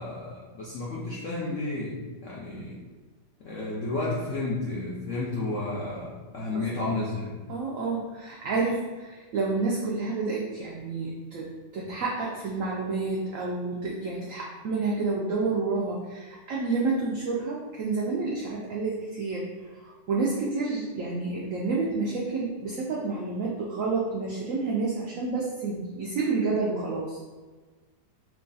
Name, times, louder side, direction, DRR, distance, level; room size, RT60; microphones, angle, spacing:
voice 1, 0.0-2.8 3.4-7.4, left 2 dB, 70° left, -6 dB, 0.7 m, -32 dB
voice 2, 7.5-19.5 20.1-27.2, right 3 dB, 85° right, -3 dB, 0.7 m, -29 dB
3.1 x 2.4 x 3.8 m, 1.3 s
omnidirectional pair, 1.9 m